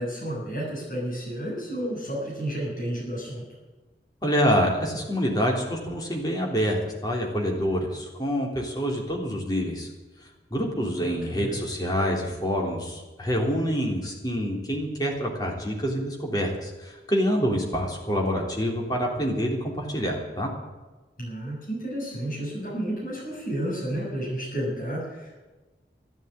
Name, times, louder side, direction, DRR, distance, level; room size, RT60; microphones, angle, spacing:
voice 1, 0.0-3.4 11.0-11.6 21.2-25.4, right 1 dB, 50° left, -5 dB, 7.2 m, -31 dB
voice 2, 4.2-9.9 10.5-20.5, equal, 20° left, 0 dB, 3.3 m, -26 dB
13.5 x 11.0 x 9.1 m, 1.2 s
head